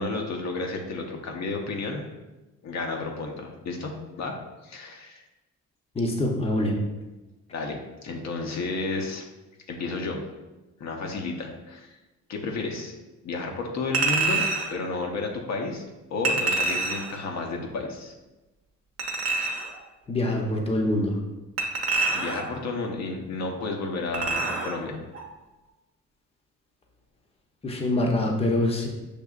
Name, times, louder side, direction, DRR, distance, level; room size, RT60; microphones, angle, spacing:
voice 1, 0.0-2.0 2.6-4.3 4.6-5.2 7.5-9.2 9.7-10.2 10.8-11.9 12.3-12.9 13.2-14.4 14.7-15.8 16.1-18.1 22.1-25.0, left 3 dB, 60° left, 1 dB, 0.7 m, -32 dB
voice 2, 5.9-6.8 20.1-21.2 27.6-28.9, left 1 dB, 20° left, 1 dB, 0.7 m, -24 dB
Chink clink, 13.9-14.7 16.2-17.2 19.0-19.7 21.6-22.6 24.1-24.8 25.1-25.3, right 3 dB, 55° right, 0.8 m, -26 dB
6.5 x 2.7 x 2.4 m, 1.1 s
cardioid pair, 90°, 30 cm